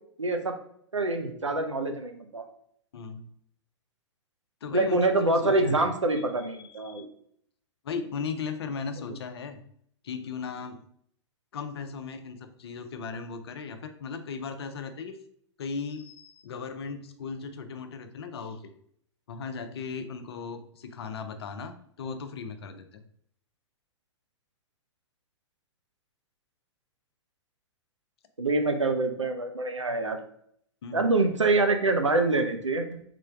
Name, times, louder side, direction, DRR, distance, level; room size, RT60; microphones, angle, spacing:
voice 1, 0.2-0.5 0.9-2.5 4.7-7.1 22.0-22.1 28.4-30.2 30.9-33.0, right 2 dB, 85° right, 5 dB, 0.7 m, -25 dB
voice 2, 2.9-3.3 4.6-5.8 6.5-7.0 7.8-9.6 10.0-10.8 11.5-15.2 15.6-18.7 19.3-23.0 30.8-31.0, left 5 dB, 60° left, 8 dB, 0.6 m, -37 dB
3.7 x 3.3 x 3.4 m, 0.67 s
figure-of-eight pair, 105°, 15 cm